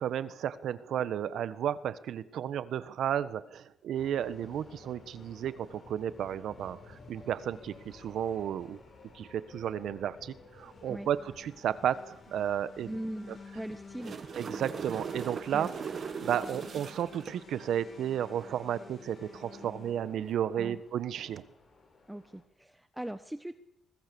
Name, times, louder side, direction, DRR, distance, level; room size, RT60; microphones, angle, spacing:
voice 1, 0.0-8.8 9.1-12.9 14.3-15.7 16.2-21.4, right 10 dB, 70° right, 14 dB, 1.3 m, -33 dB
sound 1, 3.9-22.4, left 4 dB, 45° left, 7.7 m, -52 dB
voice 2, 12.9-14.2 15.5-15.7 20.6-20.8 22.1-23.5, right 1 dB, 5° right, 10 dB, 1.1 m, -40 dB
sound 2, 13.7-17.4 21.2-21.4, right 6 dB, 50° right, 1.2 m, -39 dB
23.5 x 21.0 x 7.1 m, 0.83 s
cardioid pair, 90°, 0 cm